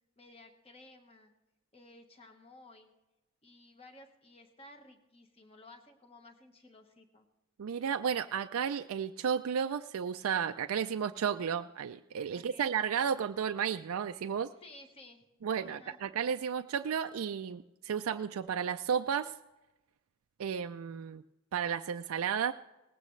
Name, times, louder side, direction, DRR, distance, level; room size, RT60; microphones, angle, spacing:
voice 1, 0.2-1.3 1.7-2.9 3.4-7.3 12.3-12.7 14.6-15.2 15.6-16.0, left 2 dB, 25° left, 5 dB, 1.3 m, -55 dB
voice 2, 7.6-14.5 15.4-19.3 20.4-21.2 21.5-22.5, right 7 dB, 75° right, 8 dB, 0.4 m, -33 dB
19.0 x 15.5 x 3.2 m, 1.0 s
head